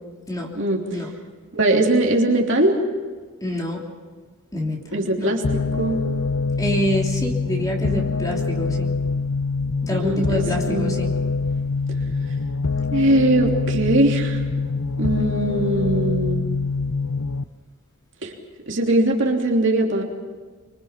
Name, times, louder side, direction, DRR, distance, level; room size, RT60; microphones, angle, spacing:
voice 1, 1.5-2.8 4.9-5.4 5.8-6.0 9.9-11.0 12.9-14.4 15.0-16.4 18.2-18.3 18.7-20.0, right 1 dB, 55° right, 0 dB, 3.3 m, -20 dB
voice 2, 3.4-3.8 4.5-5.3 6.6-8.9 9.8-11.1, left 1 dB, 15° left, -1 dB, 3.2 m, -26 dB
sound 1, 5.4-17.4, left 4 dB, 85° left, 0.7 m, -24 dB
25.0 x 24.0 x 6.0 m, 1.5 s
head